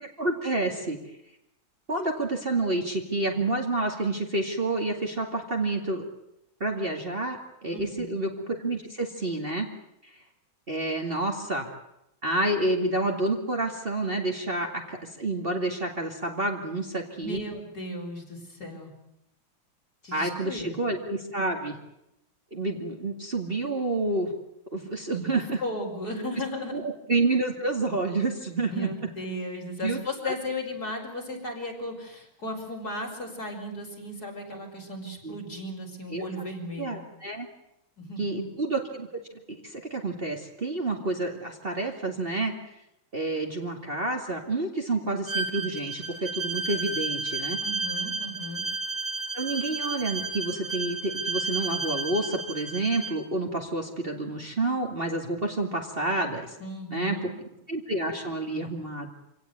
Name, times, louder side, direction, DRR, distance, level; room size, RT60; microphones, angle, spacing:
voice 1, 0.2-1.0 1.9-6.0 6.6-9.7 10.7-11.7 12.2-17.4 20.1-21.8 22.5-24.3 24.7-25.6 26.7-28.9 29.8-30.0 30.2-30.3 35.2-35.4 36.1-36.2 36.8-37.5 38.2-39.1 39.5-42.6 43.1-47.6 49.3-56.6 56.9-57.3 57.7-59.1, right 2 dB, 25° right, 2 dB, 2.5 m, -29 dB
voice 2, 7.7-8.1 17.2-18.9 20.0-20.8 25.3-26.8 28.7-37.0 38.0-38.5 47.6-48.6 56.6-57.3, left 1 dB, 45° left, 0 dB, 6.0 m, -36 dB
Bowed string instrument, 45.3-53.2, right 3 dB, 5° right, 2.9 m, -32 dB
27.0 x 17.5 x 9.6 m, 0.84 s
omnidirectional pair, 2.2 m